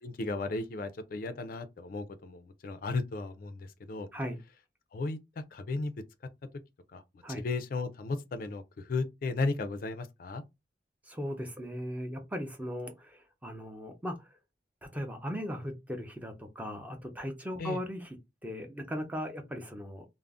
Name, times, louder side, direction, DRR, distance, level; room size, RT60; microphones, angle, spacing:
voice 1, 0.0-4.1 4.9-5.9 6.9-7.0 7.4-10.4 17.6-17.8, left 3 dB, 50° left, 0.4 m, -35 dB
voice 2, 11.0-14.4 14.8-18.2 18.4-20.1, equal, 10° right, 0.5 m, -38 dB
2.4 x 2.0 x 3.4 m
head